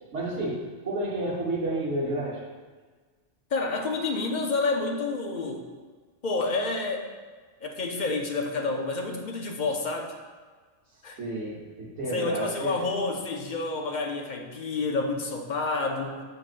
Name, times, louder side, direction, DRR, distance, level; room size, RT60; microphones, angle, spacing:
voice 1, 0.1-2.4 11.2-12.7, right 1 dB, 70° right, -9 dB, 1.3 m, -30 dB
voice 2, 3.5-5.7 6.2-7.1 7.6-10.1 11.0-11.2 12.1-16.2, left 3 dB, 50° left, 2 dB, 0.6 m, -29 dB
7.7 x 4.9 x 2.5 m, 1.4 s
omnidirectional pair, 1.2 m